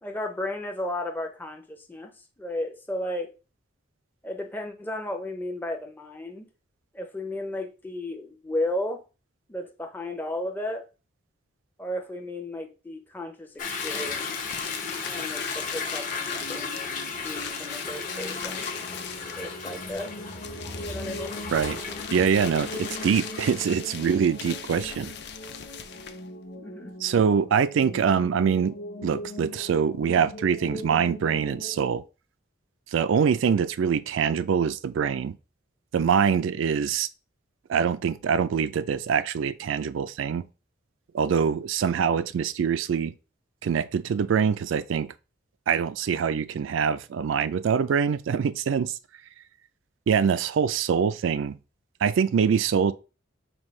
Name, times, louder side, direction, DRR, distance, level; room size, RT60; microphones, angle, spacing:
voice 1, 0.0-3.3 4.2-6.5 6.9-9.0 9.5-10.8 11.8-14.3 15.0-16.8 17.1-18.7 19.4-20.1 20.8-21.4 26.6-27.0, left 1 dB, 10° left, 0.5 m, -34 dB
Toilet flush / Drip / Trickle dribble, 13.6-23.7, left 4 dB, 40° left, 0.9 m, -35 dB
sound 1, 13.7-26.3, left 8 dB, 60° left, 0.5 m, -40 dB
sound 2, 15.7-31.9, left 1 dB, 75° left, 1.0 m, -42 dB
voice 2, 22.1-25.1 27.0-28.7 29.0-32.0 32.9-35.4 35.9-37.1 37.7-40.4 41.1-43.1 43.6-45.1 45.7-49.0 50.1-51.6 52.0-52.9, right 7 dB, 75° right, 0.3 m, -24 dB
5.3 x 2.7 x 3.1 m
head